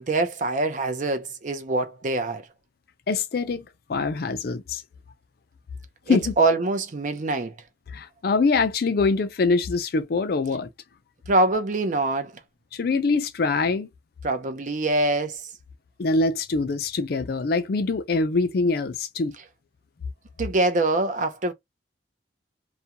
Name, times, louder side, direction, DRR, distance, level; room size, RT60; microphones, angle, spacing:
voice 1, 0.1-2.4 6.1-7.6 11.3-12.4 14.2-15.5 20.4-21.5, right 2 dB, 40° right, 0.5 m, -24 dB
voice 2, 3.1-3.6 3.9-4.8 6.1-6.3 7.9-10.7 12.7-13.9 16.0-19.3, left 3 dB, 55° left, 0.4 m, -24 dB
2.4 x 2.2 x 2.8 m
head